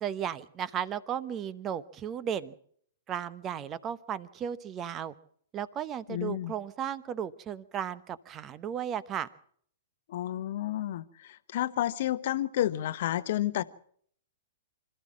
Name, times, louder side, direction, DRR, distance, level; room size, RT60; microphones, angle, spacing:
voice 1, 0.0-2.5 3.1-5.1 5.5-9.3, right 9 dB, 25° right, 17 dB, 1.0 m, -35 dB
voice 2, 6.1-6.5 10.1-13.6, left 13 dB, 55° left, 15 dB, 0.9 m, -31 dB
26.0 x 13.5 x 7.4 m, 0.62 s
figure-of-eight pair, 110°, 0 cm